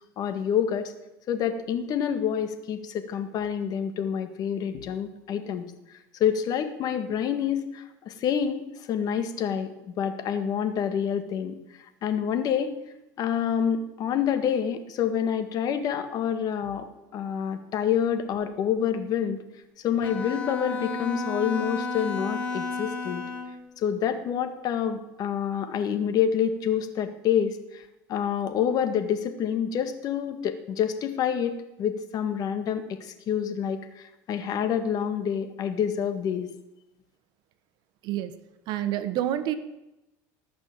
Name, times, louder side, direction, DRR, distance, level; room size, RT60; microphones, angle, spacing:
voice 1, 0.2-0.9 1.3-5.6 6.2-11.6 12.0-12.7 13.2-16.9 17.1-19.4 19.8-23.2 23.8-27.8 28.1-36.5, left 8 dB, 50° left, 9 dB, 1.8 m, -27 dB
Bowed string instrument, 20.0-23.6, left 4 dB, 15° left, 2.8 m, -32 dB
voice 2, 38.7-39.5, right 12 dB, 60° right, 12 dB, 1.3 m, -28 dB
18.0 x 6.2 x 9.0 m, 0.95 s
supercardioid pair, 120°, 8 cm